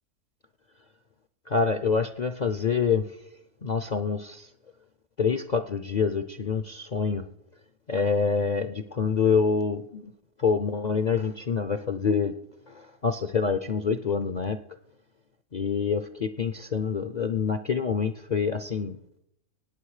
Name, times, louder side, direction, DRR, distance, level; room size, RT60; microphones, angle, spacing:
voice 1, 1.5-3.0 3.6-4.5 5.2-7.3 7.9-10.1 10.4-12.3 12.7-14.6 15.5-19.0, left 5 dB, 55° left, 10 dB, 0.4 m, -26 dB
18.0 x 8.9 x 4.9 m, 0.77 s
omnidirectional pair, 1.5 m